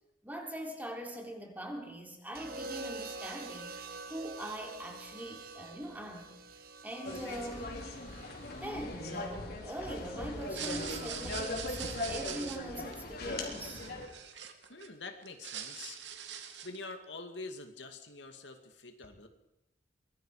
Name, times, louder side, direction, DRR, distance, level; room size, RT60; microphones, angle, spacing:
voice 1, 0.2-3.8 4.1-6.4 6.8-7.7 8.6-13.8, right 1 dB, 10° right, 1 dB, 3.6 m, -42 dB
sound 1, 2.3-10.5 11.7-12.1, right 3 dB, 55° right, 1.8 m, -47 dB
sound 2, 7.0-14.1, left 2 dB, 60° left, 4.1 m, -39 dB
sound 3, 10.4-14.9 15.2-16.8, right 8 dB, 75° right, 2.3 m, -43 dB
voice 2, 14.7-16.0 16.6-19.3, left 3 dB, 75° left, 6 dB, 2.4 m, -45 dB
24.0 x 21.5 x 5.0 m, 0.88 s
head